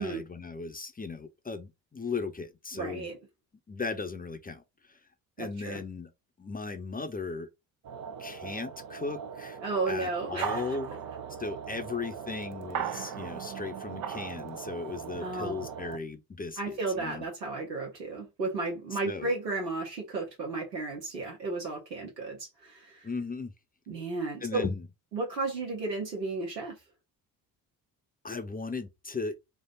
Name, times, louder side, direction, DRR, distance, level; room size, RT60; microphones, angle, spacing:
voice 1, 0.0-3.1 3.7-4.6 4.9-5.0 5.4-6.1 6.4-7.5 8.2-9.6 9.9-10.9 11.4-17.2 19.0-19.3 23.0-23.5 24.4-24.9 28.2-29.3, left 4 dB, 15° left, 0.9 m, -37 dB
voice 2, 2.7-3.2 5.4-5.8 9.6-10.6 15.2-15.5 16.6-23.1 23.9-24.6 25.1-26.8, right 3 dB, 85° right, 1.5 m, -33 dB
sound 1, 7.8-16.0, right 8 dB, 45° right, 0.8 m, -39 dB
4.7 x 2.4 x 3.8 m
figure-of-eight pair, 50°, 49 cm